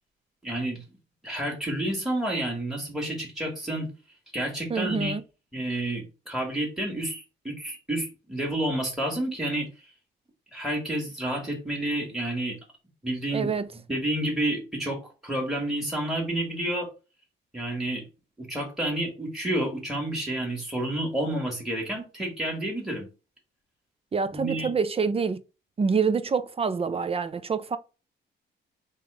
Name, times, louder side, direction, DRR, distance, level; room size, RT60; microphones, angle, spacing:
voice 1, 0.4-0.8 1.2-3.9 4.3-5.1 5.5-9.9 10.5-12.6 13.0-13.5 13.9-16.9 17.5-18.0 18.4-23.1 24.3-24.7, right 1 dB, ahead, 1.6 m, -30 dB
voice 2, 4.7-5.2 13.3-13.7 24.1-25.4 25.8-27.8, right 5 dB, 30° right, 0.5 m, -26 dB
3.5 x 2.9 x 4.7 m
cardioid pair, 90°, 20 cm